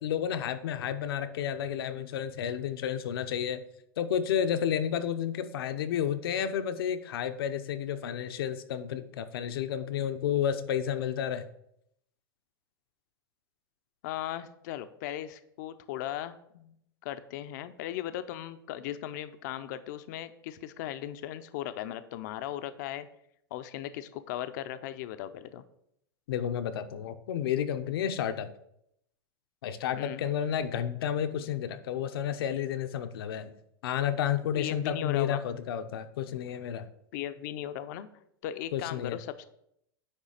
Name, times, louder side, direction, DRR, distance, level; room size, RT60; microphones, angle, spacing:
voice 1, 0.0-3.6 4.0-11.5 26.3-28.5 29.6-33.5 33.8-36.9 38.7-39.2, left 9 dB, 75° left, 9 dB, 0.8 m, -31 dB
voice 2, 14.0-16.8 17.0-23.1 23.5-25.6 30.0-30.2 34.6-35.4 37.1-38.1 38.4-39.5, left 12 dB, 50° left, 11 dB, 0.6 m, -37 dB
9.9 x 3.3 x 6.5 m, 0.75 s
supercardioid pair, 165°, 12 cm